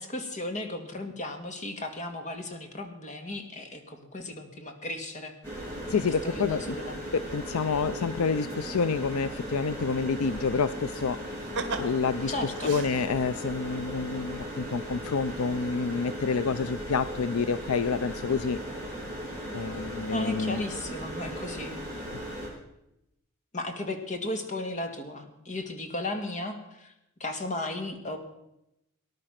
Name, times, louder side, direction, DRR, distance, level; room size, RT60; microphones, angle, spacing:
voice 1, 0.0-5.3 5.9-7.0 12.3-12.7 20.1-21.7 23.5-26.9 27.2-28.2, left 2 dB, 35° left, 6 dB, 2.0 m, -35 dB
sound 1, 5.4-22.5, equal, 10° left, 7.2 m, -37 dB
voice 2, 5.9-6.8 7.1-11.3 11.8-18.6 19.5-20.6 22.1-22.2, left 5 dB, 75° left, 14 dB, 0.5 m, -28 dB
sound 2, 11.3-13.5 14.9-15.0 15.4-15.9 16.2-16.3, right 3 dB, 60° right, 1.9 m, -37 dB
19.0 x 11.0 x 5.8 m, 0.86 s
head